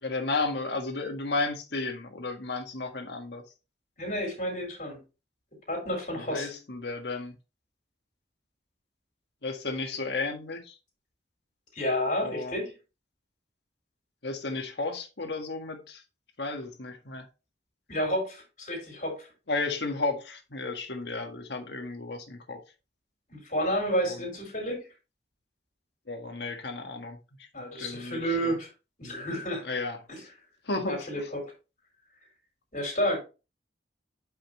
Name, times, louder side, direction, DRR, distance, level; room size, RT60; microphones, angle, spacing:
voice 1, 0.0-3.4 6.1-7.4 9.4-10.8 12.2-12.6 14.2-16.0 16.4-17.2 19.5-22.6 24.1-24.2 26.1-27.5 27.8-28.6 29.6-30.0 30.6-31.3, left 3 dB, 65° left, 1.6 m, -33 dB
voice 2, 4.0-5.0 5.7-6.5 11.7-12.7 17.9-19.3 23.3-24.8 27.5-28.7 29.0-29.6 30.1-30.2 30.9-31.5 32.7-33.2, equal, 45° left, 4.2 m, -30 dB
8.7 x 5.7 x 3.1 m
head